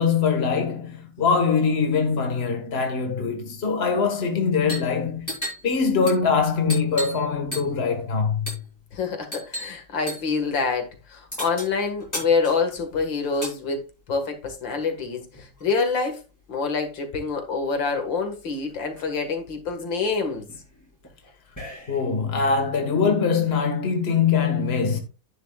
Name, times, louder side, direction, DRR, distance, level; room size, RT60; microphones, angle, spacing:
voice 1, 0.0-5.3 5.6-8.6 21.9-25.0, left 5 dB, 35° left, 1.8 m, -23 dB
sound 1, 4.6-4.9 5.2-7.3 7.5-7.9 8.5-8.7 9.3-9.8 10.1-10.3 11.3-13.6 14.6-15.7 16.9-17.0 17.3-17.9 18.4-18.5 18.7-19.2 19.7-22.2, equal, 10° left, 6.5 m, -36 dB
voice 2, 8.9-13.8 14.1-16.2 16.5-20.4, left 4 dB, 85° left, 2.6 m, -26 dB
10.5 x 10.0 x 2.4 m
omnidirectional pair, 2.0 m